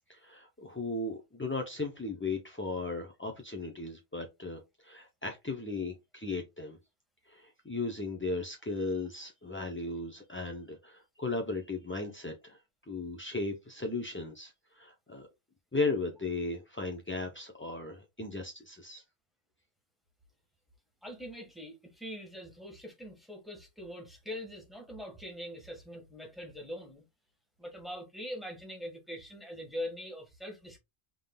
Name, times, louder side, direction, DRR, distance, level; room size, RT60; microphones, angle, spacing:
voice 1, 0.1-6.8 7.3-12.6 12.9-15.3 15.7-19.0, left 3 dB, 15° left, 0.4 m, -36 dB
voice 2, 21.0-27.0 27.6-30.8, left 1 dB, ahead, 1.4 m, -43 dB
5.3 x 3.7 x 2.3 m
omnidirectional pair, 1.2 m